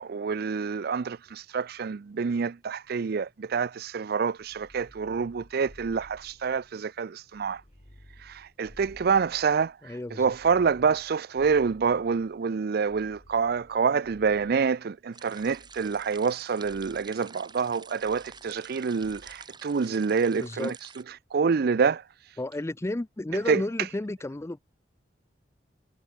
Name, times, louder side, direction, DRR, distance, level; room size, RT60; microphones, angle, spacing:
voice 1, 0.0-7.6 8.2-9.7 10.2-20.7 21.3-22.0 23.5-23.6, right 5 dB, 60° right, 0.4 m, -27 dB
sound 1, 4.4-6.8 7.3-9.7 10.2-12.4 12.9-14.7 15.4-16.3 16.6-17.1 18.0-18.7 19.0-19.5, equal, 40° left, 3.3 m, -55 dB
voice 2, 9.8-10.3 20.4-20.7 22.4-24.6, left 1 dB, 15° left, 0.4 m, -32 dB
sound 2, 15.1-21.0, right 5 dB, 25° right, 3.8 m, -49 dB
head